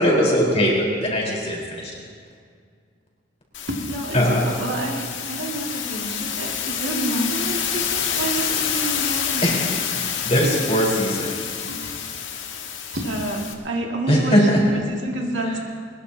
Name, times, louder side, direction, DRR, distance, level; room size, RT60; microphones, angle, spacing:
voice 1, 0.0-1.9 4.1-4.4 9.4-9.6 9.9-11.4 14.1-14.6, equal, 30° left, -3 dB, 4.3 m, -20 dB
sound 1, 3.5-13.5, left 8 dB, 75° left, 1.6 m, -28 dB
voice 2, 3.7-9.9 11.7-11.8 12.9-15.6, right 1 dB, 65° right, 0 dB, 2.2 m, -29 dB
22.5 x 21.5 x 2.9 m, 2.1 s
head